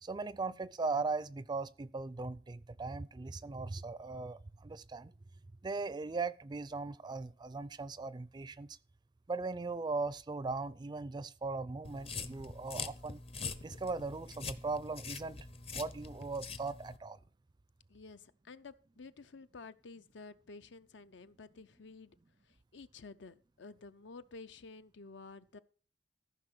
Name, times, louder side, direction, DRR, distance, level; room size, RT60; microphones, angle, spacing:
voice 1, 0.0-5.1 5.6-8.8 9.3-13.2 13.6-15.4 15.7-17.2, right 3 dB, 25° right, 0.4 m, -39 dB
sound 1, 11.8-17.0, left 4 dB, 30° left, 0.7 m, -44 dB
voice 2, 17.9-22.2 22.5-25.6, left 4 dB, 70° left, 0.6 m, -52 dB
14.5 x 5.6 x 6.1 m
head